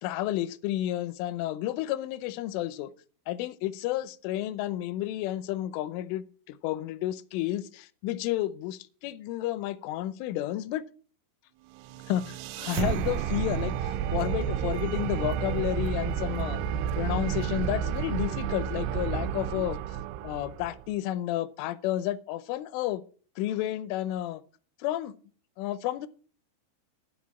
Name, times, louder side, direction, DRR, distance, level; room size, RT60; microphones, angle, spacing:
voice 1, 0.0-2.9 3.3-10.8 12.1-16.6 17.0-19.8 20.2-23.0 23.4-24.4 24.8-25.2 25.6-26.1, left 13 dB, 85° left, 3.2 m, -31 dB
sound 1, 11.8-20.9, right 9 dB, 85° right, 3.1 m, -31 dB
12.5 x 4.7 x 8.3 m
omnidirectional pair, 5.5 m